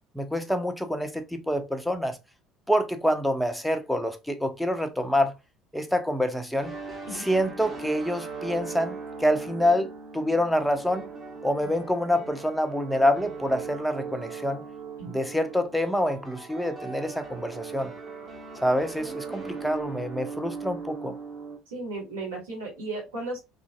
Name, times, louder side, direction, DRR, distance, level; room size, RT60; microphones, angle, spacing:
voice 1, 0.1-2.2 2.7-5.4 5.7-6.8 7.1-11.1 11.4-14.6 15.1-17.9 18.6-21.2, equal, 5° left, 0.5 m, -26 dB
sound 1, 6.6-21.6, right 4 dB, 25° right, 0.8 m, -39 dB
voice 2, 21.7-23.4, right 2 dB, 70° right, 1.4 m, -35 dB
2.9 x 2.5 x 2.3 m
figure-of-eight pair, 60°, 0 cm